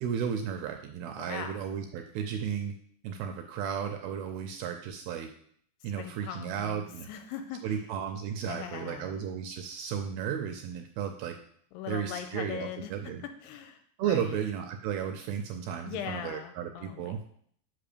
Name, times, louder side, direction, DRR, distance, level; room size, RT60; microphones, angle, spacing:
voice 1, 0.0-2.7 3.0-5.3 5.8-7.1 7.6-11.4 11.9-13.2 14.0-17.2, right 8 dB, 80° right, 5 dB, 2.3 m, -34 dB
voice 2, 1.2-1.7 5.8-7.8 8.4-9.2 11.7-14.4 15.8-17.3, left 9 dB, 80° left, 7 dB, 2.7 m, -41 dB
6.0 x 5.7 x 6.7 m, 0.63 s
omnidirectional pair, 4.9 m